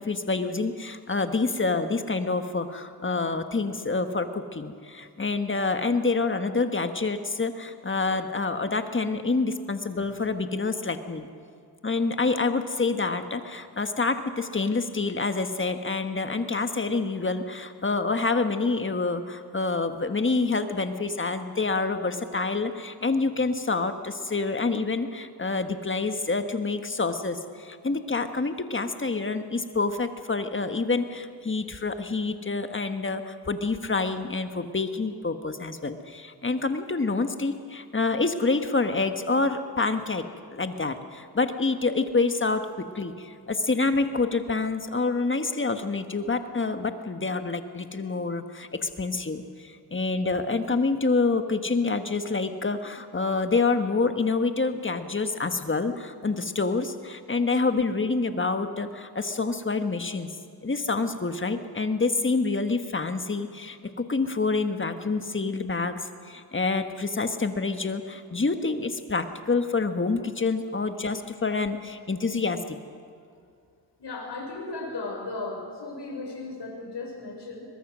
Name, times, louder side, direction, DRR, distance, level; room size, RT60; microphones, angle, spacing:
voice 1, 0.0-11.3 11.8-40.2 40.5-60.3 60.6-66.0 66.3-72.8, left 3 dB, 30° left, 8 dB, 1.5 m, -27 dB
voice 2, 74.0-77.7, left 3 dB, 70° left, 0 dB, 5.8 m, -36 dB
22.5 x 21.0 x 6.3 m, 2.4 s
cardioid pair, 80°, 43 cm